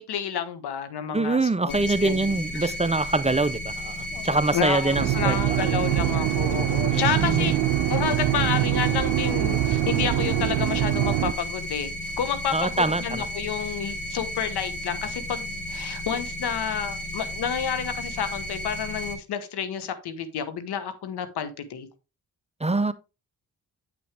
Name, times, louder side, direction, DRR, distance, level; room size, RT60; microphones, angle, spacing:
voice 1, 0.0-2.7 4.1-7.6 7.9-21.9, left 8 dB, 80° left, 1.2 m, -30 dB
voice 2, 1.1-5.6 6.9-7.6 12.5-13.3 22.6-22.9, right 3 dB, 15° right, 0.6 m, -25 dB
sound 1, 1.7-19.1, equal, 55° left, 4.4 m, -34 dB
sound 2, 5.0-11.3, right 15 dB, 80° right, 0.5 m, -24 dB
8.3 x 5.9 x 3.3 m
supercardioid pair, 50°, 39 cm